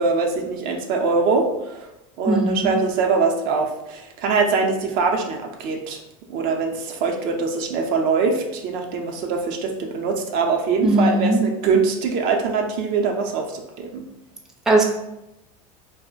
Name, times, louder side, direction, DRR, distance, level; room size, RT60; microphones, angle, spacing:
voice 1, 0.0-1.9 2.2-6.0 6.3-14.1, right 4 dB, 60° right, 3 dB, 0.5 m, -23 dB
voice 2, 2.3-2.7 10.8-11.4 14.7-14.8, right 1 dB, 5° right, 0 dB, 0.4 m, -18 dB
2.4 x 2.0 x 3.7 m, 0.91 s
supercardioid pair, 115°, 17 cm